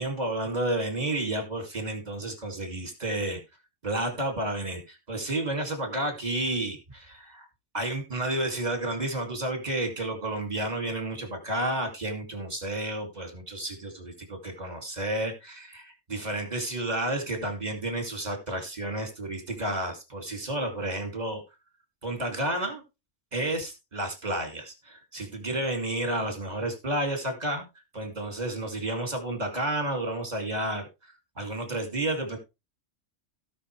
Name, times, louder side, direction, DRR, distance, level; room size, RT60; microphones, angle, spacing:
voice 1, 0.0-3.4 3.8-7.5 7.7-21.4 22.0-22.8 23.3-27.7 27.9-32.4, right 1 dB, 35° right, 4 dB, 2.8 m, -31 dB
17.0 x 5.8 x 3.3 m, 0.25 s
omnidirectional pair, 1.2 m